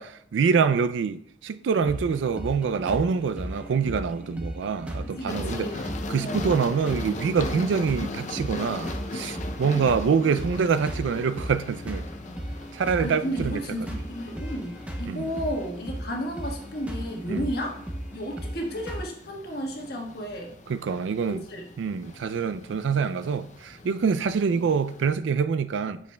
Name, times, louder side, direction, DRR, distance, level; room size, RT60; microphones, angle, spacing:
voice 1, 0.0-5.7 6.1-12.1 12.7-13.6 15.1-15.3 17.3-17.4 20.7-21.4 21.8-26.0, right 6 dB, 85° right, 0.4 m, -25 dB
sound 1, 1.8-19.0, equal, 5° right, 0.6 m, -37 dB
voice 2, 5.0-5.8 6.1-6.4 13.0-17.8 18.1-20.5 21.3-21.7, equal, 55° left, 1.3 m, -33 dB
sound 2, 5.3-25.2, left 2 dB, 40° left, 0.5 m, -39 dB
8.4 x 6.3 x 2.2 m
head